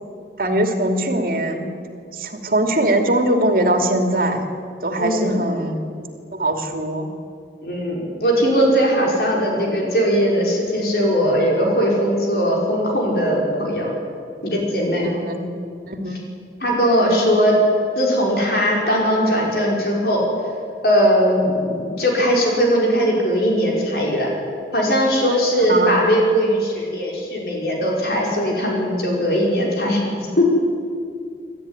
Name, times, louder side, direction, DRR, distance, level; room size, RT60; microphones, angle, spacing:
voice 1, 0.4-1.7 2.1-4.4 4.8-6.1 6.3-7.1 15.0-15.4 15.9-16.2 25.7-25.9, right 1 dB, 55° right, 4 dB, 2.7 m, -21 dB
voice 2, 5.0-5.4 7.6-13.9 14.4-15.1 16.6-17.6 18.0-20.2 20.8-24.3 24.7-30.5, equal, 60° left, -2 dB, 5.4 m, -19 dB
28.0 x 13.0 x 9.7 m, 2.3 s
head